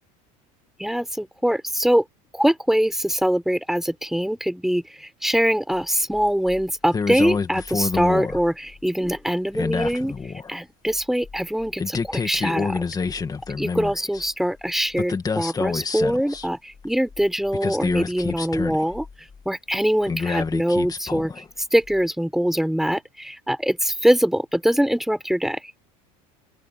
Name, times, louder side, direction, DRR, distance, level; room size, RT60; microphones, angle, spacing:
voice 1, 0.8-2.0 2.3-12.8 13.6-19.1 19.4-25.7, equal, ahead, 6.3 m, -23 dB
sound 1, 6.1-6.6 6.9-8.8 9.1-9.2 9.5-10.5 10.9-14.3 15.0-16.5 16.8-16.9 17.1-19.4 20.1-21.5 21.8-22.0, left 5 dB, 20° left, 2.4 m, -28 dB
open air
supercardioid pair, 110°, 18 cm